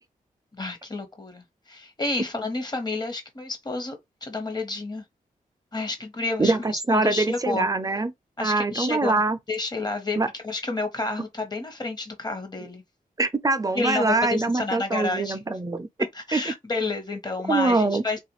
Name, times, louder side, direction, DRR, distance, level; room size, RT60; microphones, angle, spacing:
voice 1, 0.5-5.0 5.7-6.6 6.9-7.7 8.4-9.1 9.5-12.8 13.7-15.4 16.1-18.2, left 3 dB, 30° left, 1.1 m, -30 dB
voice 2, 6.4-8.1 8.4-9.4 10.2-10.3 13.2-15.9 16.3-16.4 17.5-18.0, right 3 dB, 25° right, 0.5 m, -23 dB
3.3 x 2.4 x 3.1 m
cardioid pair, 80°, 15 cm